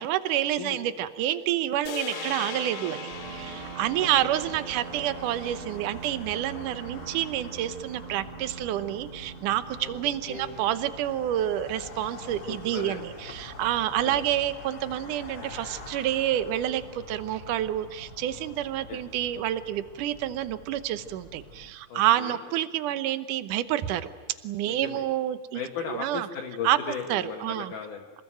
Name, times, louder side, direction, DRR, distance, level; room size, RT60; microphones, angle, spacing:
voice 1, 0.0-24.1 24.4-25.6 25.9-26.3 26.6-26.8 27.1-27.7, right 12 dB, 80° right, 12 dB, 1.8 m, -28 dB
sound 1, 1.9-6.3, left 11 dB, 80° left, 3.3 m, -41 dB
sound 2, 2.1-13.9, right 8 dB, 50° right, 2.0 m, -44 dB
sound 3, 3.1-21.7, left 2 dB, 30° left, 2.1 m, -45 dB
voice 2, 9.8-10.7 12.5-13.3 14.0-14.2 18.9-19.0 21.9-22.4 24.6-25.1 25.5-28.0, left 6 dB, 55° left, 1 dB, 2.8 m, -37 dB
27.5 x 20.0 x 9.1 m, 1.4 s
omnidirectional pair, 5.0 m